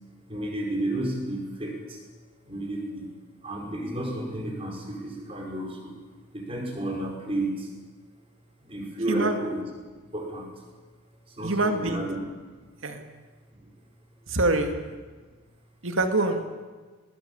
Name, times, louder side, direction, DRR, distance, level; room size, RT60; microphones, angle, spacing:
voice 1, 0.3-2.0 2.4-3.1 3.4-5.9 6.3-7.7 8.6-9.6 10.1-10.5 11.3-12.5 13.6-13.7, right 1 dB, 25° right, 1 dB, 5.0 m, -32 dB
voice 2, 9.1-9.4 11.4-12.0 12.8-13.0 14.3-14.7 15.8-16.4, right 2 dB, 70° right, 6 dB, 2.3 m, -25 dB
20.5 x 19.0 x 8.6 m, 1.4 s
head